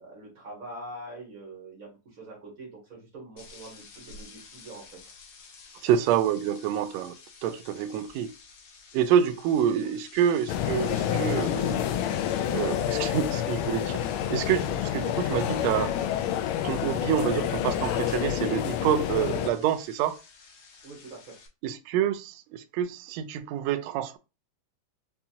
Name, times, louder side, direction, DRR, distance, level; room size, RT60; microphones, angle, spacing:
voice 1, 0.0-5.1 9.8-9.9 20.8-21.4, right 1 dB, 65° right, 0.8 m, -44 dB
sound 1, 3.4-21.5, left 5 dB, 65° left, 1.6 m, -51 dB
voice 2, 5.8-7.2 7.4-8.3 8.9-11.9 12.5-14.0 14.3-16.0 16.6-20.2 21.6-24.2, right 9 dB, 80° right, 1.5 m, -27 dB
sound 2, 10.5-19.5, left 10 dB, 85° left, 1.5 m, -28 dB
5.7 x 2.3 x 2.7 m
omnidirectional pair, 3.6 m